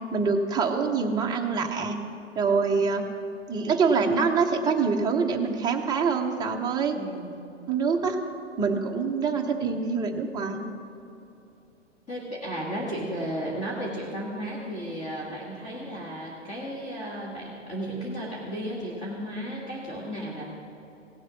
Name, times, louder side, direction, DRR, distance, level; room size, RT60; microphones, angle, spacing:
voice 1, 0.1-2.0 2.3-3.0 3.5-7.0 7.7-8.2 8.6-10.6, right 5 dB, 10° right, 2 dB, 0.8 m, -25 dB
voice 2, 6.9-7.3 12.1-20.4, equal, 20° left, -5 dB, 1.8 m, -34 dB
17.0 x 7.5 x 6.0 m, 2.8 s
figure-of-eight pair, 110°, 37 cm